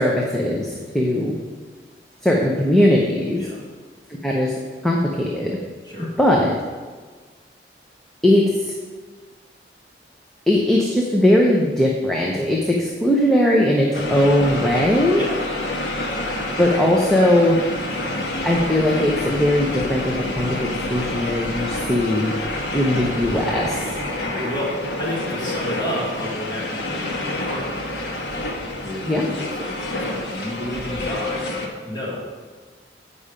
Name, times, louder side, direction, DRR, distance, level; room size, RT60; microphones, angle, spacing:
voice 1, 0.0-1.4 2.2-3.5 4.2-4.5 4.8-5.6 6.0-6.5 8.2-8.7 10.5-15.2 16.6-17.6 18.4-20.6 20.9-22.3 22.7-23.9 29.0-29.3, left 1 dB, 5° left, -3 dB, 0.7 m, -19 dB
sound 1, 13.9-31.7, left 2 dB, 75° left, 1.2 m, -28 dB
voice 2, 23.8-28.2 28.8-31.5 31.8-32.3, equal, 25° left, -5 dB, 1.6 m, -31 dB
8.6 x 5.5 x 5.0 m, 1.5 s
head